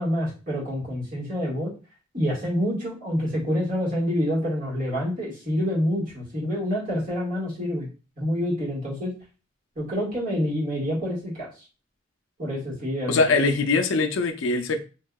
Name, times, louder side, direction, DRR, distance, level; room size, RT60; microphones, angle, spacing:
voice 1, 0.0-1.7 2.1-7.9 8.2-9.1 9.7-11.5 12.4-13.4, equal, 40° right, -7 dB, 1.6 m, -27 dB
voice 2, 13.1-14.8, left 3 dB, 80° left, 7 dB, 0.4 m, -22 dB
3.6 x 2.7 x 2.3 m, 0.33 s
head